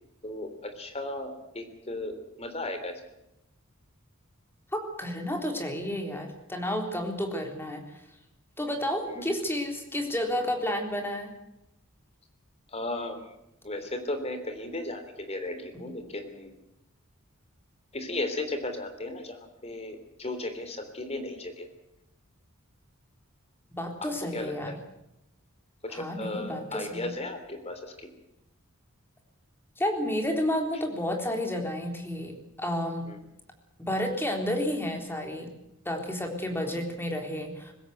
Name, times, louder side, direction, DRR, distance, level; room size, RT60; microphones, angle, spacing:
voice 1, 0.2-2.9 9.1-9.2 12.7-13.3 13.6-16.6 17.9-19.4 19.6-21.7 24.0-24.5 25.8-27.9 33.1-33.2 36.6-36.7, left 2 dB, 30° left, 7 dB, 3.5 m, -35 dB
voice 2, 4.7-7.8 8.6-11.3 15.7-15.9 23.7-24.8 25.9-27.1 29.8-33.1 33.8-35.5 35.9-37.7, left 1 dB, 10° left, 3 dB, 3.7 m, -31 dB
20.5 x 16.5 x 8.0 m, 0.86 s
head